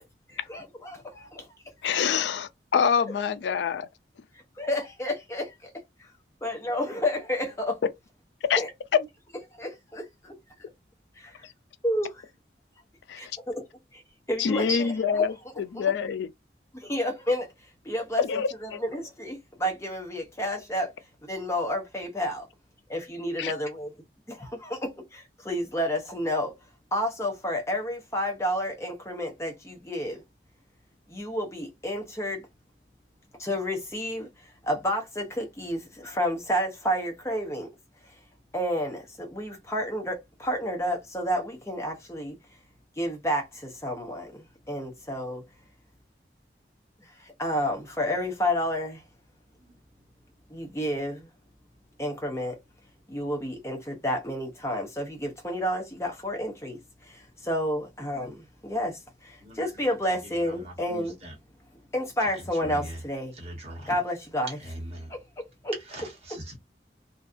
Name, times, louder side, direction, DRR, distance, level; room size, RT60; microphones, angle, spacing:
voice 1, 0.3-1.6 4.3-6.1 6.4-7.8 8.6-9.0 9.5-10.4 11.1-11.5 11.8-12.3 13.2-13.6 13.9-14.0 14.3-15.3 15.7-15.9 16.7-22.5 22.9-30.2 31.1-32.5 33.4-37.7 38.0-38.2 38.5-42.6 43.0-45.4 47.0-49.0 50.5-51.3 52.0-52.6 53.1-61.2 61.7-63.3 63.9-64.7 65.1-66.1, equal, 15° left, 0.6 m, -31 dB
voice 2, 1.8-3.9 8.5-8.6 13.1-13.2 14.4-16.3 18.3-18.8 23.4-23.5, left 7 dB, 85° left, 0.3 m, -26 dB
voice 3, 62.6-62.9 63.4-63.9 64.9-65.1 65.9-66.0 66.3-66.6, equal, 35° right, 1.1 m, -40 dB
2.6 x 2.3 x 2.4 m
head